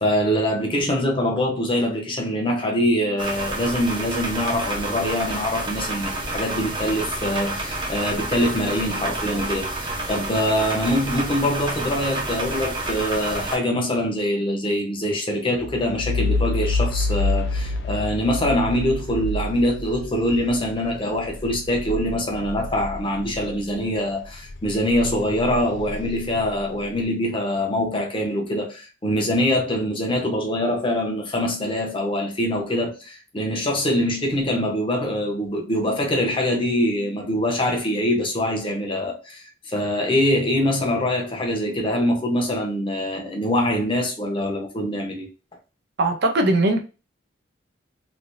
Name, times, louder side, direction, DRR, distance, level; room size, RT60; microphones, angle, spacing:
voice 1, 0.0-45.3, left 1 dB, 30° left, 0.9 m, -24 dB
sound 1, 3.2-13.6, right 2 dB, 25° right, 0.8 m, -29 dB
sound 2, 15.6-23.8 24.2-26.8, left 2 dB, 70° left, 0.6 m, -28 dB
voice 2, 46.0-46.8, right 1 dB, 60° right, 0.6 m, -19 dB
3.3 x 2.6 x 2.6 m
head